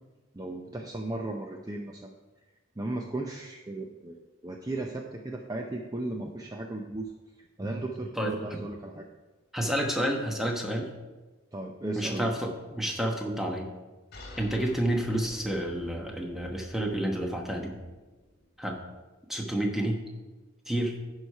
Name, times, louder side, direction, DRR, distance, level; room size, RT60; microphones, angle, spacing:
voice 1, 0.3-2.1 2.8-7.1 7.4-9.0 11.5-12.3, right 2 dB, 20° right, 2 dB, 0.5 m, -36 dB
voice 2, 8.2-8.6 9.5-10.9 12.0-13.7 14.4-17.8 18.6-18.8 19.3-20.0 20.7-21.0, right 1 dB, ahead, 0 dB, 1.0 m, -30 dB
sound 1, 14.1-19.2, left 1 dB, 50° left, 1.6 m, -49 dB
10.5 x 4.8 x 5.5 m, 1.2 s
head